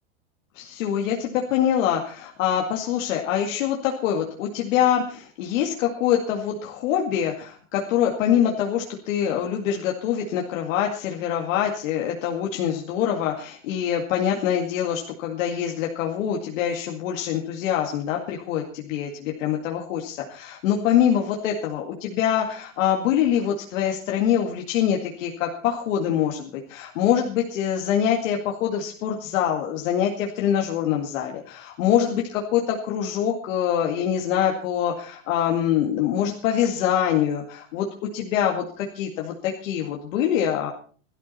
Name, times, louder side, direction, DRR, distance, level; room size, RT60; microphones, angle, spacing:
voice 1, 0.6-37.9 38.1-40.7, left 9 dB, 70° left, 0 dB, 2.2 m, -24 dB
17.5 x 13.0 x 4.2 m, 0.43 s
supercardioid pair, 145°, 39 cm